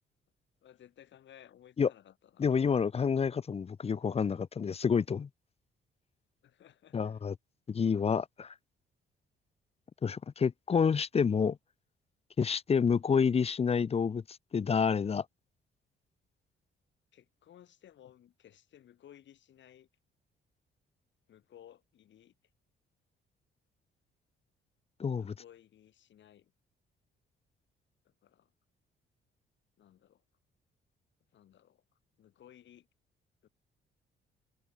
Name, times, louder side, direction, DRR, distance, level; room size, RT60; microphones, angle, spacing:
voice 1, 0.6-2.6 6.4-7.2 17.1-19.9 21.3-22.3 25.1-26.5 28.0-28.5 29.8-30.2 31.3-31.8 32.2-32.9 33.4-33.5, left 11 dB, 65° left, 2.8 m, -58 dB
voice 2, 2.4-5.3 6.9-7.3 7.7-8.5 10.0-11.6 12.4-14.2 14.5-15.2 25.0-25.3, left 6 dB, 30° left, 0.6 m, -28 dB
cardioid pair, 90°, 20 cm